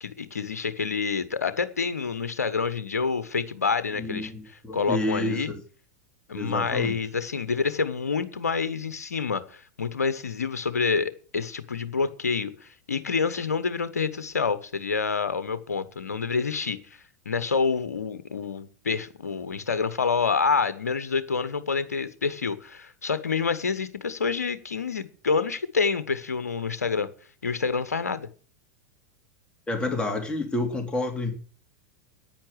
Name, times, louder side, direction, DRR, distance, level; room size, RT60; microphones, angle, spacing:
voice 1, 0.0-5.5 6.3-27.1 27.4-28.3, left 5 dB, 75° left, 13 dB, 1.1 m, -28 dB
voice 2, 4.0-5.4 6.3-6.9 29.7-31.3, left 2 dB, 10° left, 2 dB, 3.0 m, -29 dB
10.5 x 9.4 x 6.4 m, 0.40 s
figure-of-eight pair, 90°, 8 cm